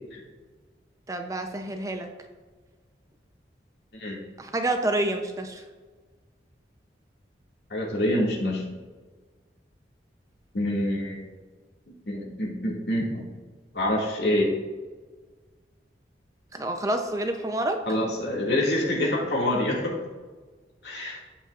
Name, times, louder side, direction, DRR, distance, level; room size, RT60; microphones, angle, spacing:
voice 1, 1.1-2.1 4.4-5.6 16.5-17.8, right 1 dB, 20° right, 5 dB, 0.6 m, -28 dB
voice 2, 7.7-8.6 10.5-11.3 12.1-13.2 13.7-14.5 17.9-20.0 20.8-21.2, left 1 dB, 70° left, -2 dB, 2.1 m, -26 dB
15.0 x 5.6 x 2.4 m, 1.4 s
head